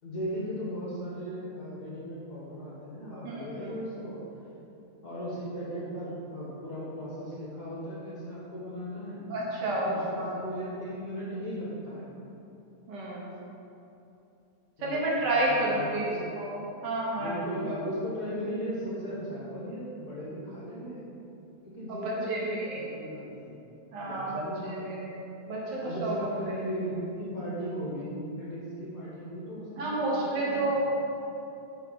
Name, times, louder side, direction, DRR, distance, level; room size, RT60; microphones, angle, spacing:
voice 1, 0.0-4.2 5.0-9.2 9.6-12.2 14.8-16.2 17.1-21.0 21.7-23.6 24.0-25.1 25.8-30.7, equal, 60° left, -8 dB, 1.0 m, -37 dB
voice 2, 3.2-3.7 9.3-10.4 12.9-13.3 14.8-16.1 16.4-17.4 17.7-17.8 21.9-22.8 23.9-24.4 24.8-25.0 25.5-26.1 29.8-30.8, right 2 dB, 60° right, -5 dB, 1.2 m, -30 dB
5.6 x 4.9 x 5.5 m, 2.8 s
omnidirectional pair, 3.5 m